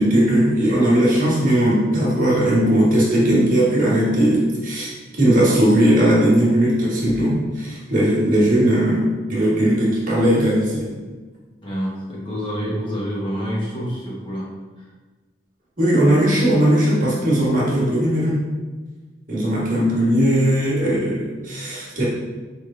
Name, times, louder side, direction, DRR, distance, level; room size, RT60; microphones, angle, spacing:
voice 1, 0.0-4.9 5.2-10.9 15.8-18.4 19.3-22.0, right 1 dB, 45° right, -6 dB, 1.3 m, -18 dB
voice 2, 11.6-14.5 14.8-14.9, equal, 30° left, -6 dB, 1.0 m, -27 dB
4.2 x 3.3 x 3.7 m, 1.3 s
head